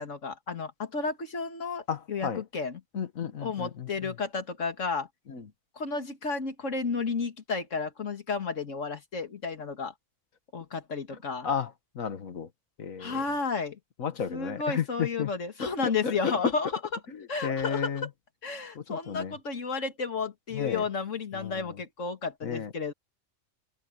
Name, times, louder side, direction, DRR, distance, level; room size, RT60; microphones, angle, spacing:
voice 1, 0.0-2.8 3.4-5.1 5.8-9.9 10.5-11.5 13.0-13.8 14.3-17.0 17.3-18.1 18.4-22.9, left 4 dB, 65° left, 2.4 m, -32 dB
voice 2, 1.9-2.4 2.9-4.1 5.3-5.4 11.4-11.7 12.0-12.5 12.8-13.2 14.0-15.3 15.6-16.3 17.4-18.1 18.8-19.4 20.5-20.8 21.3-21.6 22.4-22.7, left 7 dB, 85° left, 1.9 m, -33 dB
omnidirectional pair, 1.4 m